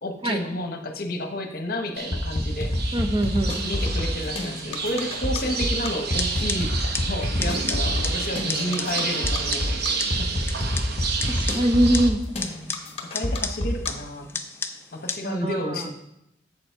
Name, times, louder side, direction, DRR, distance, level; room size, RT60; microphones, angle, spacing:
voice 1, 0.0-2.7 3.6-6.7 7.1-10.3 13.0-14.3 14.9-15.9, left 1 dB, 50° left, 5 dB, 1.0 m, -31 dB
sound 1, 2.0-12.1, right 4 dB, 55° right, 0.8 m, -30 dB
sound 2, 2.1-13.9, left 1 dB, 30° left, 1.2 m, -26 dB
voice 2, 2.9-3.6 11.3-12.2 15.2-15.9, right 1 dB, 25° right, 5 dB, 0.7 m, -23 dB
sound 3, 5.9-15.2, left 4 dB, 15° left, 0.4 m, -35 dB
7.2 x 7.0 x 4.5 m, 0.82 s
head